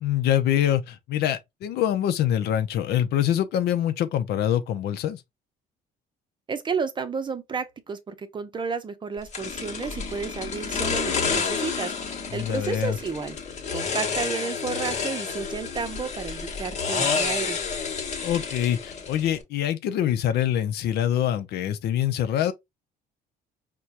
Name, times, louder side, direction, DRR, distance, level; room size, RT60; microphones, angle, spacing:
voice 1, 0.0-5.2 12.3-13.0 18.2-22.5, left 11 dB, 75° left, 0.6 m, -25 dB
voice 2, 6.5-13.4 13.7-17.6, right 5 dB, 30° right, 0.6 m, -32 dB
sound 1, 9.3-19.4, left 5 dB, 45° left, 1.1 m, -30 dB
4.4 x 2.2 x 2.5 m
cardioid pair, 110°, 17 cm